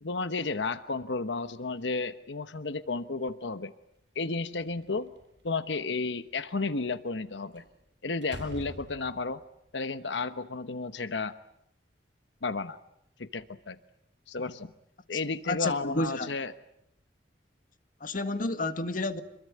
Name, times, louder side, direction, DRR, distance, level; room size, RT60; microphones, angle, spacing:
voice 1, 0.0-3.7 4.1-5.1 5.4-7.6 8.0-9.4 9.7-11.3 12.4-12.8 13.2-13.8 14.3-14.7 15.1-16.5, left 3 dB, 80° left, 1.0 m, -32 dB
Slam, 4.4-5.4 7.5-7.8 8.2-9.4, equal, 80° right, 6.8 m, -45 dB
voice 2, 15.5-16.3 18.0-19.2, left 2 dB, 50° left, 1.8 m, -30 dB
26.5 x 22.5 x 9.5 m
head